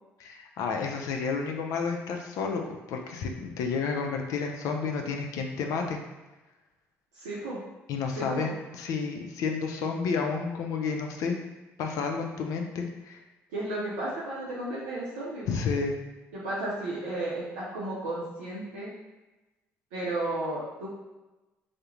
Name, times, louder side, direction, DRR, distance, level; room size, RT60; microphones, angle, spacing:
voice 1, 0.2-6.0 7.9-11.4 11.8-13.2 15.5-15.9, left 5 dB, 70° left, 3 dB, 0.4 m, -31 dB
voice 2, 7.1-7.6 8.2-8.5 13.5-15.7 16.3-18.9 19.9-20.9, right 2 dB, 90° right, -8 dB, 0.5 m, -33 dB
2.3 x 2.0 x 3.0 m, 1.1 s
hypercardioid pair, 60°, 6 cm